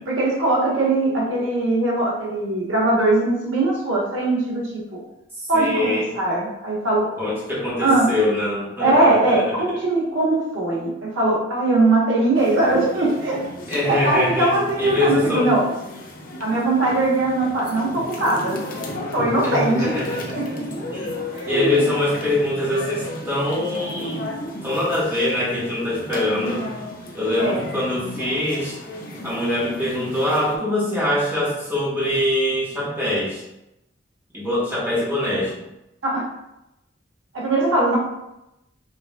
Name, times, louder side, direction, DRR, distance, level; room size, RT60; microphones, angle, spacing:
voice 1, 0.1-4.6 4.9-5.0 5.5-7.1 7.8-8.1 8.8-13.4 13.8-15.6 16.4-18.6 19.1-20.0 20.3-20.7 21.3-21.8 27.4-27.6 36.0-36.3 37.3-38.0, right 2 dB, 85° right, -4 dB, 1.3 m, -20 dB
voice 2, 5.4-6.1 7.2-9.6 13.7-15.5 19.4-20.6 20.9-21.1 21.5-24.3 24.6-26.6 27.1-28.8 29.2-33.4 34.3-35.5, left 1 dB, 10° right, -8 dB, 1.3 m, -23 dB
sound 1, 12.3-30.6, left 1 dB, 45° left, 0.7 m, -34 dB
5.3 x 3.4 x 2.4 m, 0.89 s
head